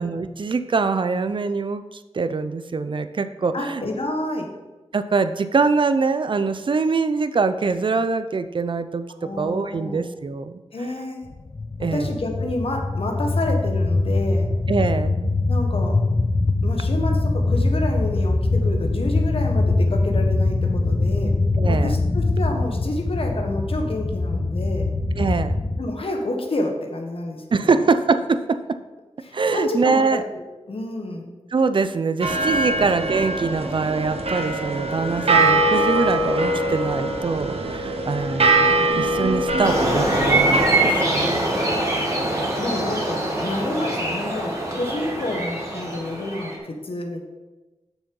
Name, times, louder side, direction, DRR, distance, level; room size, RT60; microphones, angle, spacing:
voice 1, 0.0-1.8 2.1-3.8 4.9-10.6 11.8-12.1 14.7-15.2 21.6-22.0 25.2-25.6 27.5-28.8 29.3-30.2 31.5-41.4, right 4 dB, 50° right, 11 dB, 0.5 m, -23 dB
voice 2, 3.5-4.5 9.2-10.1 10.7-11.3 11.8-14.5 15.5-16.0 16.6-21.3 21.6-24.9 25.8-27.9 29.2-31.3 42.1-42.3 42.6-47.3, left 1 dB, 60° left, 2 dB, 1.4 m, -29 dB
sound 1, 11.3-25.8, left 2 dB, 30° left, 0.6 m, -22 dB
sound 2, 32.2-40.6, right 2 dB, 65° right, 1.1 m, -22 dB
sound 3, 39.6-46.5, right 1 dB, 30° right, 2.2 m, -23 dB
6.8 x 6.2 x 5.3 m, 1.1 s
wide cardioid pair, 80°, 11 cm